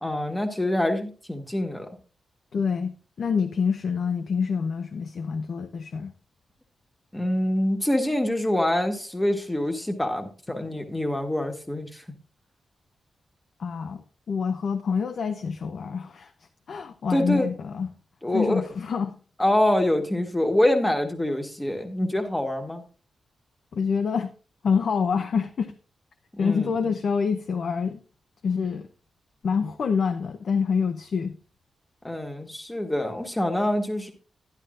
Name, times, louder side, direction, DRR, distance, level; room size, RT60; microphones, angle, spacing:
voice 1, 0.0-1.9 7.1-12.0 17.1-17.5 18.2-18.6 19.4-22.8 26.3-26.7 32.0-34.1, left 1 dB, 10° left, 1.4 m, -25 dB
voice 2, 2.5-6.1 13.6-14.0 14.3-16.3 16.7-17.9 18.3-19.2 23.7-24.3 24.6-25.7 26.4-28.0 28.4-28.9 29.4-31.4, left 6 dB, 55° left, 0.7 m, -26 dB
12.0 x 11.5 x 2.5 m
wide cardioid pair, 160°, 0 cm